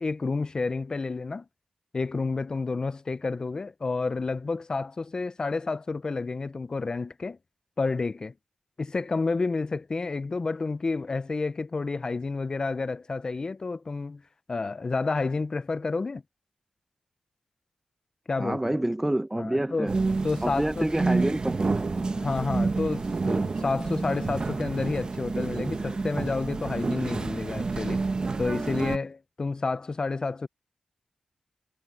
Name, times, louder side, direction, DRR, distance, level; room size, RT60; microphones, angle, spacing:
voice 1, 0.0-1.4 1.9-7.4 7.8-8.3 8.8-14.2 14.5-16.2 18.3-18.8 19.4-19.9 20.2-20.9 22.1-28.0 28.4-30.5, left 3 dB, 40° left, 0.5 m, -30 dB
voice 2, 18.4-20.0 20.4-22.1, right 1 dB, 10° right, 0.8 m, -28 dB
sound 1, 19.9-29.0, right 3 dB, 45° right, 1.1 m, -29 dB
cardioid pair, 75°, 2 cm